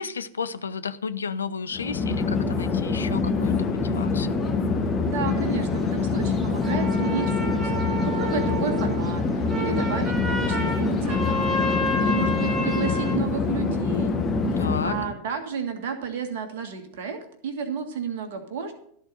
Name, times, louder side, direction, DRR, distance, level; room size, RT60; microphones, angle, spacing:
voice 1, 0.0-4.4 12.0-12.6 14.6-14.9, left 5 dB, 70° left, 11 dB, 0.6 m, -33 dB
Chatter / Fixed-wing aircraft airplane, 1.7-15.1, left 4 dB, 20° left, 1.3 m, -25 dB
voice 2, 5.0-14.2 14.5-18.7, right 6 dB, 50° right, 6 dB, 1.7 m, -32 dB
sound 1, 5.3-13.2, left 1 dB, 5° right, 1.9 m, -31 dB
13.0 x 4.4 x 7.8 m, 0.66 s
figure-of-eight pair, 90°, 0 cm